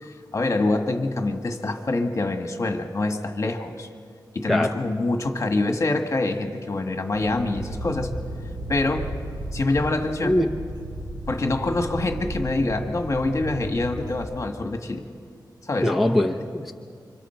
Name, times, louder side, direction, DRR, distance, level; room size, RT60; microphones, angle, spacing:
voice 1, 0.0-3.9 4.3-8.1 8.7-9.1 9.5-10.4 11.3-15.1 15.6-15.9, left 2 dB, 40° left, 5 dB, 1.6 m, -25 dB
sound 1, 7.1-14.3, right 1 dB, 70° right, 4.3 m, -34 dB
voice 2, 15.8-16.7, left 1 dB, ahead, 2 dB, 0.8 m, -22 dB
29.5 x 25.5 x 4.5 m, 2.2 s
wide cardioid pair, 130°, 8 cm